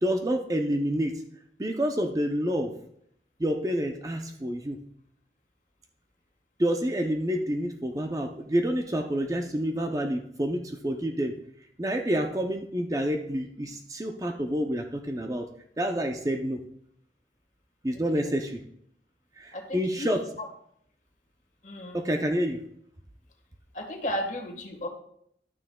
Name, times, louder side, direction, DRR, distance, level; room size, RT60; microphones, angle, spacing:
voice 1, 0.0-1.2 1.6-2.7 3.4-4.8 6.6-11.4 11.8-15.5 15.8-16.6 17.8-18.6 19.4-20.2 21.9-22.6, equal, 20° right, 4 dB, 0.5 m, -28 dB
voice 2, 17.9-18.3 19.5-20.1 20.4-20.5 21.6-22.0 23.7-24.9, equal, 45° left, 3 dB, 1.4 m, -34 dB
11.5 x 9.6 x 2.2 m, 0.70 s
head